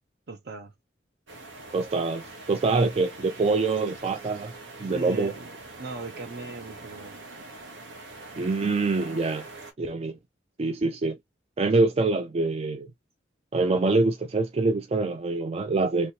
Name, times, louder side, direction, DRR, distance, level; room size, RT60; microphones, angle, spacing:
voice 1, 0.3-0.7 4.9-5.5 5.8-7.2, right 3 dB, 60° right, 0.7 m, -38 dB
sound 1, 1.3-9.7, right 3 dB, 80° right, 1.1 m, -44 dB
voice 2, 1.7-4.5 4.8-5.3 8.4-9.5 9.8-10.2 10.6-11.2 11.6-12.9 13.5-16.1, right 3 dB, 35° right, 0.4 m, -25 dB
3.0 x 2.8 x 2.8 m
head